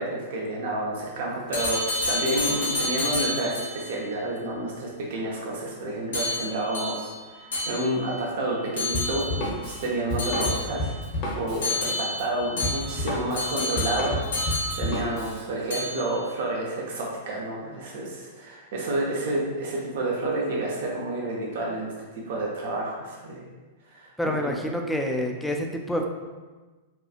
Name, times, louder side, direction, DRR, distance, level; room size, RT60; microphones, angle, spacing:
voice 1, 0.0-10.9 11.3-14.2 14.5-23.4 23.9-24.5, right 1 dB, 65° right, -3 dB, 0.5 m, -30 dB
sound 1, 1.5-3.9 6.1-8.2 8.8-9.5 10.2-11.1 11.6-15.4 15.7-16.2, left 2 dB, 80° left, 0.7 m, -30 dB
Drum kit, 8.9-15.4, left 1 dB, 45° left, 0.7 m, -31 dB
voice 2, 24.2-26.1, equal, 5° left, 2 dB, 0.3 m, -27 dB
2.8 x 2.3 x 2.4 m, 1.3 s
hypercardioid pair, 110°, 0 cm